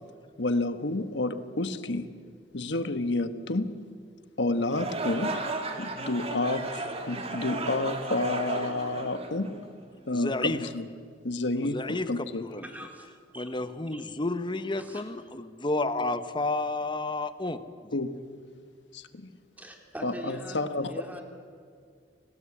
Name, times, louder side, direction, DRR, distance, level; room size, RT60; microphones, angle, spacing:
voice 1, 0.4-2.1 2.5-3.8 4.4-5.4 5.8-9.6 10.1-10.9 11.2-12.4 17.9-18.2 18.9-19.4 20.0-20.9, left 2 dB, 75° left, 10 dB, 1.3 m, -30 dB
sound 1, 4.7-9.9, right 2 dB, 35° right, 2.5 m, -35 dB
voice 2, 10.1-10.6 11.6-12.7 13.3-17.6, left 2 dB, 25° left, 11 dB, 1.1 m, -31 dB
voice 3, 12.6-13.1 13.3-13.5 13.9-14.0 14.8-15.0 19.6-20.6 20.8-21.2, equal, 10° right, 2 dB, 3.5 m, -42 dB
27.5 x 18.5 x 8.6 m, 2.1 s
head